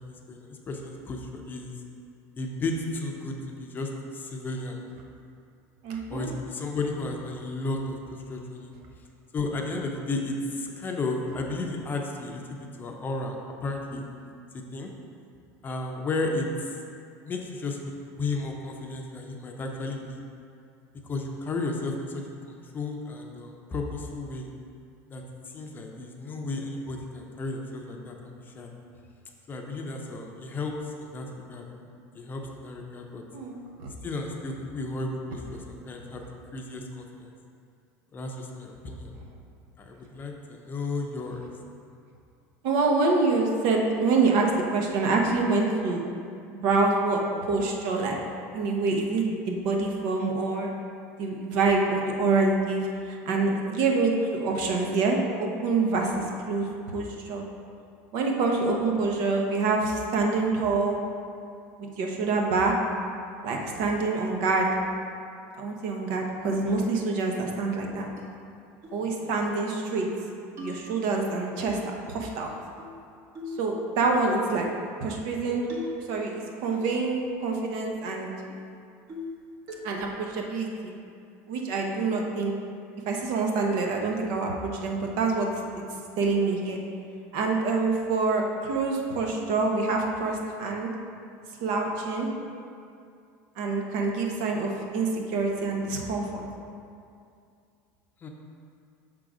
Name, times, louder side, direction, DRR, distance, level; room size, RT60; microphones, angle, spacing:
voice 1, 0.0-1.7 2.4-4.8 6.1-8.7 9.3-14.1 14.7-14.9 15.6-16.8 17.2-20.2 21.0-22.2 22.5-24.5 25.1-25.2 25.5-28.7 29.5-30.7 31.0-31.6 32.1-33.2 34.0-36.2 36.5-37.3 38.1-39.2 39.8-41.5 69.2-69.3 98.2-98.3, left 2 dB, 25° left, 1 dB, 0.6 m, -33 dB
voice 2, 5.8-6.3 33.3-33.9 42.6-46.0 46.5-48.2 48.5-50.7 51.2-57.4 58.1-61.0 61.8-62.7 63.4-64.7 65.6-68.1 68.9-70.1 70.6-71.8 72.1-72.5 73.6-74.7 75.0-75.7 76.1-78.3 79.8-80.9 81.5-82.5 83.1-85.5 86.2-86.8 87.3-90.9 91.6-92.3 93.6-96.4, right 3 dB, 65° right, 1 dB, 0.9 m, -26 dB
sound 1, 68.2-68.3 68.8-69.0 69.4-69.5 69.8-70.2 70.6-71.3 72.3-73.0 73.3-73.7 74.2-74.4 75.5-76.1 76.4-77.1 77.4-77.5 77.8-78.1 78.5-78.6 79.1-79.4 79.7-80.1, left 2 dB, 40° right, 1.1 m, -40 dB
6.1 x 3.8 x 4.9 m, 2.4 s
supercardioid pair, 135°, 8 cm